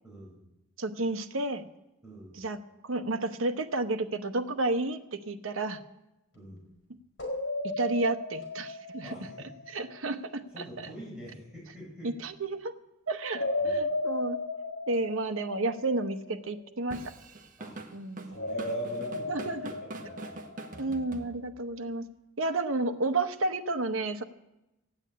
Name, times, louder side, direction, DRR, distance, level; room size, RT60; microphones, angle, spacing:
voice 1, 0.0-0.4 2.0-2.4 6.3-6.7 9.0-9.6 10.5-12.1 13.6-13.8 17.6-17.8 18.2-20.2, equal, 5° right, -6 dB, 7.1 m, -46 dB
voice 2, 0.8-1.7 2.4-2.6 2.8-5.8 7.8-9.1 9.7-10.4 12.0-12.7 13.1-14.4 14.9-17.1 17.9-18.3 19.3-19.6 20.8-22.1 22.4-24.2, right 2 dB, 75° right, 7 dB, 1.0 m, -31 dB
sound 1, 7.2-10.2 13.3-16.6 18.3-21.1, left 2 dB, 60° left, 4.3 m, -35 dB
Drum kit / Drum, 16.9-21.7, right 2 dB, 40° right, 1.1 m, -43 dB
15.0 x 9.0 x 8.5 m, 0.95 s
head